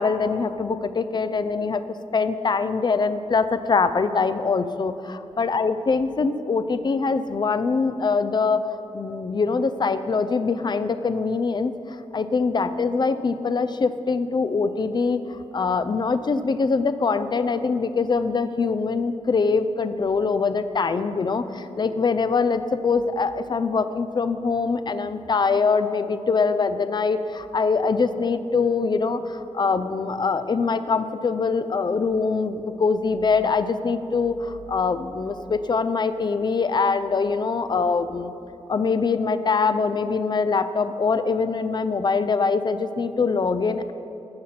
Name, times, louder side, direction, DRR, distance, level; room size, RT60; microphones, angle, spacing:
voice 1, 0.0-1.8 2.1-38.3 38.7-43.9, left 4 dB, 40° left, 12 dB, 0.5 m, -23 dB
15.0 x 5.8 x 5.8 m, 2.9 s
wide cardioid pair, 140°, 11 cm